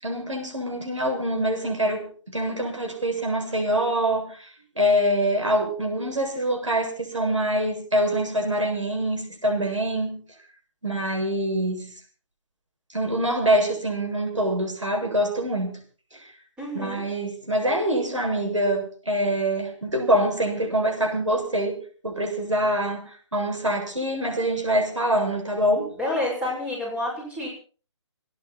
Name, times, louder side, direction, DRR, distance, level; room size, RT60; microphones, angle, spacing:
voice 1, 0.0-4.5 4.8-10.2 10.8-11.9 12.9-15.7 16.7-25.9, right 1 dB, 80° right, 2 dB, 7.5 m, -25 dB
voice 2, 16.6-17.0 26.0-27.5, left 1 dB, 5° right, -3 dB, 6.4 m, -29 dB
30.0 x 10.5 x 4.4 m, 0.39 s
figure-of-eight pair, 145°, 16 cm